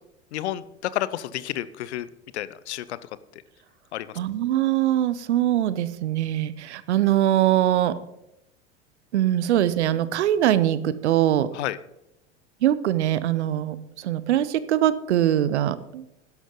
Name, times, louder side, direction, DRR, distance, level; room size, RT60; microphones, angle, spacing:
voice 1, 0.3-3.1 3.9-4.2 11.5-11.8, left 13 dB, 70° left, 17 dB, 0.7 m, -31 dB
voice 2, 4.2-8.0 9.1-11.5 12.6-16.1, right 12 dB, 70° right, 16 dB, 0.8 m, -22 dB
12.0 x 11.0 x 3.8 m, 0.85 s
hypercardioid pair, 80°, 35 cm